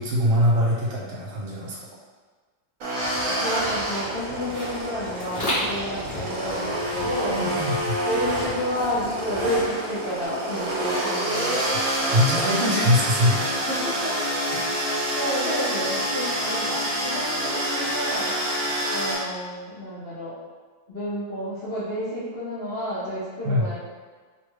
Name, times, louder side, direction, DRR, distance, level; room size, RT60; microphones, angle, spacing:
voice 1, 0.0-1.8 7.2-8.0 11.7-11.8 12.1-13.5 14.5-14.7 23.4-23.7, left 1 dB, 75° right, -4 dB, 1.5 m, -23 dB
sound 1, 2.8-19.2, right 1 dB, 55° right, 1.0 m, -27 dB
sound 2, 3.0-10.2, left 1 dB, 30° left, 0.9 m, -36 dB
voice 2, 3.4-7.5 8.0-11.6 13.6-14.1 15.1-18.4 18.9-20.4 20.9-23.8, left 1 dB, 70° left, -12 dB, 0.5 m, -31 dB
3.3 x 2.3 x 3.1 m, 1.4 s
omnidirectional pair, 2.2 m